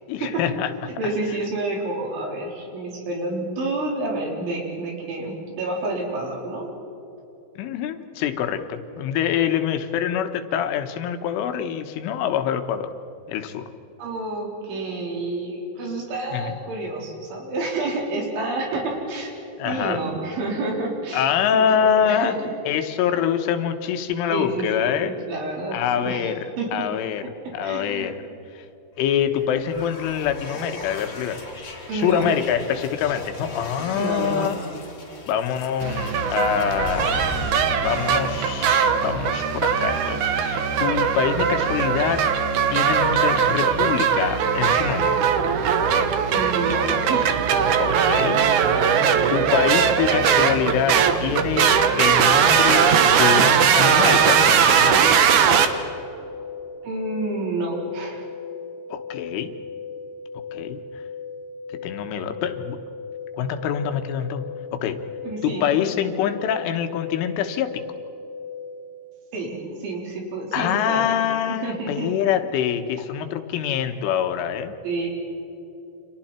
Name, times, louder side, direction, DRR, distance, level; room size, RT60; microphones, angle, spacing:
voice 1, 0.1-0.9 1.3-1.4 7.6-12.9 13.3-13.7 16.3-16.5 19.6-20.0 21.1-22.3 22.7-25.2 25.7-26.5 26.7-27.3 27.5-28.2 28.5-28.7 29.0-31.4 31.9-34.6 35.3-37.5 37.8-42.2 42.7-45.2 47.8-48.9 49.3-55.2 58.9-59.5 60.5-61.0 61.8-62.8 63.4-64.4 64.7-65.0 65.4-67.8 70.5-74.7, left 9 dB, 80° left, 7 dB, 3.7 m, -25 dB
voice 2, 1.0-6.7 14.0-19.3 19.7-21.3 21.5-22.5 24.3-26.9 27.4-28.1 31.9-32.3 33.9-34.6 46.3-47.4 56.8-58.3 65.2-65.7 69.3-71.1 71.5-72.1 74.8-75.1, right 2 dB, 70° right, -1 dB, 6.5 m, -29 dB
sound 1, 29.1-39.1, left 2 dB, 25° left, 3.5 m, -37 dB
sound 2, 35.8-55.7, right 7 dB, 85° right, 1.7 m, -20 dB
sound 3, 53.7-68.8, left 5 dB, 5° left, 3.8 m, -37 dB
30.0 x 27.0 x 4.4 m, 3.0 s
omnidirectional pair, 5.6 m